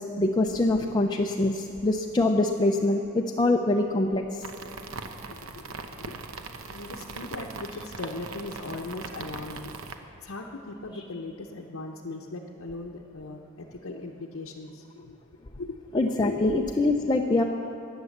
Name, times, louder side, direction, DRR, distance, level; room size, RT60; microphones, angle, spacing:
voice 1, 0.0-4.2 15.9-17.4, left 2 dB, 20° left, 1 dB, 0.5 m, -24 dB
sound 1, 4.4-9.9, right 4 dB, 75° right, 0.9 m, -40 dB
voice 2, 5.0-5.7 6.0-6.2 6.6-9.8 10.2-15.2 15.6-15.8 16.1-16.6, left 2 dB, 75° left, -1 dB, 0.8 m, -39 dB
14.5 x 9.6 x 7.2 m, 2.7 s
head